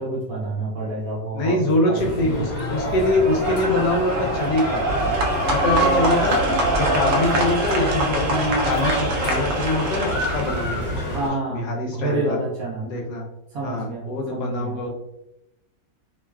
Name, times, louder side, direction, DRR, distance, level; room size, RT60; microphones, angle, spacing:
voice 1, 0.0-2.5 11.1-12.9 13.5-14.9, right 2 dB, 65° right, -4 dB, 1.0 m, -29 dB
voice 2, 1.3-4.8 5.4-6.4 6.7-11.2 11.5-12.4 12.8-13.2 13.6-14.9, left 2 dB, 75° left, 0 dB, 1.1 m, -24 dB
sound 1, 1.9-11.3, left 1 dB, 20° left, 1.0 m, -31 dB
sound 2, 3.2-10.6, right 1 dB, 85° right, 0.6 m, -23 dB
sound 3, 4.9-11.2, right 1 dB, 45° left, 1.2 m, -30 dB
3.0 x 2.3 x 2.2 m, 0.86 s
omnidirectional pair, 1.9 m